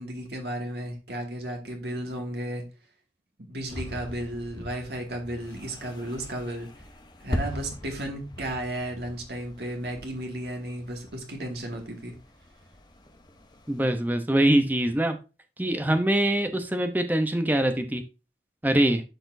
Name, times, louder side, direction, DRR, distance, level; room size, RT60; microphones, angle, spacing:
voice 1, 0.0-2.6 3.5-6.7 7.2-12.1, right 1 dB, 65° right, 1 dB, 2.1 m, -34 dB
sound 1, 3.7-14.0, equal, 25° left, 0.9 m, -40 dB
voice 2, 13.7-15.2 15.6-18.0 18.6-19.0, right 1 dB, 10° right, 7 dB, 0.7 m, -23 dB
12.0 x 4.2 x 2.7 m, 0.30 s
head